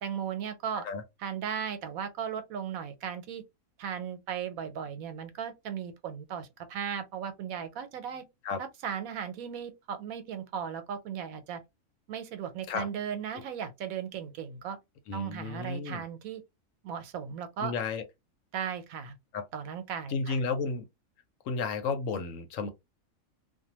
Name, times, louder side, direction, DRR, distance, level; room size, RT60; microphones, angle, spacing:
voice 1, 0.0-0.9 1.2-3.4 3.8-8.3 8.6-11.6 12.1-14.8 15.1-16.4 16.8-17.7 18.5-19.2 19.5-20.4, right 8 dB, 85° right, 1.1 m, -36 dB
voice 2, 15.1-16.0 17.6-18.0 19.3-19.5 20.1-20.8 21.4-22.7, left 4 dB, 75° left, 1.0 m, -32 dB
2.6 x 2.2 x 2.9 m
omnidirectional pair, 1.4 m